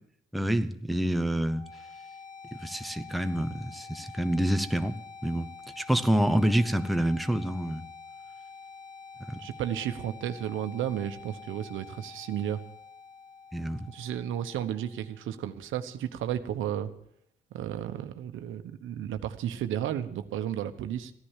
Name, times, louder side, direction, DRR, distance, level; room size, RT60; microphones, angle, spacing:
voice 1, 0.3-1.7 2.6-5.0 5.2-5.5 5.8-7.9 9.3-9.4 13.5-13.9, right 1 dB, ahead, 8 dB, 0.9 m, -27 dB
sound 1, 1.4-15.4, left 5 dB, 25° left, 2.5 m, -47 dB
voice 2, 9.4-12.6 13.9-16.9 17.5-21.1, right 10 dB, 85° right, 9 dB, 1.1 m, -33 dB
15.0 x 10.0 x 7.4 m, 0.71 s
cardioid pair, 90°, 20 cm